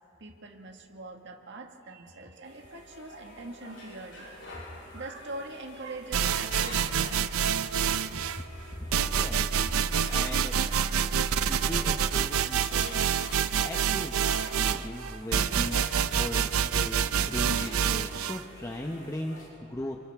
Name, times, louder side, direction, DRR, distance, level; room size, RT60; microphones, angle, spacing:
voice 1, 0.2-4.5 4.9-7.3, right 2 dB, 60° right, 3 dB, 1.7 m, -43 dB
sound 1, 2.4-19.5, left 2 dB, 85° left, 6.6 m, -47 dB
sound 2, 6.1-8.4 8.9-18.4, right 7 dB, 90° right, 0.6 m, -27 dB
voice 2, 8.1-8.4 8.7-10.5 11.4-13.0 13.6-14.3 14.5-20.0, left 1 dB, 15° left, 1 dB, 0.7 m, -38 dB
29.5 x 26.0 x 3.5 m, 2.8 s
head